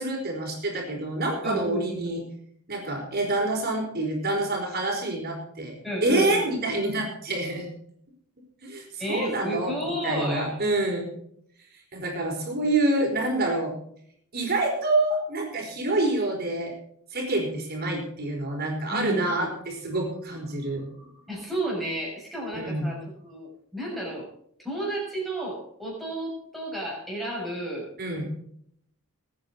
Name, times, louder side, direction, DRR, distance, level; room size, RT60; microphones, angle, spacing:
voice 1, 0.0-2.2 2.7-7.7 8.6-11.1 11.9-13.7 14.3-16.7 17.1-21.1 22.5-22.9 28.0-28.3, right 2 dB, 45° right, 1 dB, 4.7 m, -27 dB
voice 2, 1.4-2.1 5.8-6.5 9.0-10.5 18.9-19.5 21.3-24.3 24.6-27.9, right 1 dB, ahead, -3 dB, 6.5 m, -32 dB
22.0 x 9.2 x 4.1 m, 0.68 s
head